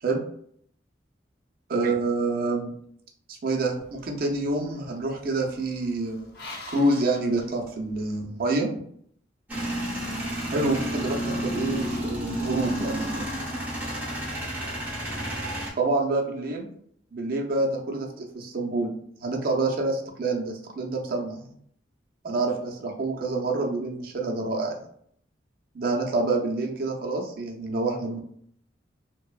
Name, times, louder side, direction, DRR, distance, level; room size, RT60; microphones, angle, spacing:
voice 1, 1.7-2.7 3.3-6.3 6.7-8.7 10.5-13.2 15.8-16.7 17.1-18.9 19.2-21.6 22.2-24.8 25.7-28.2, right 2 dB, 55° right, 0 dB, 0.5 m, -27 dB
sound 1, 3.8-8.1, left 2 dB, 60° left, 0.5 m, -46 dB
Male speech man speaking / Vehicle / Engine starting, 9.5-15.7, right 1 dB, 10° right, 0.6 m, -31 dB
2.9 x 2.0 x 2.3 m, 0.66 s
head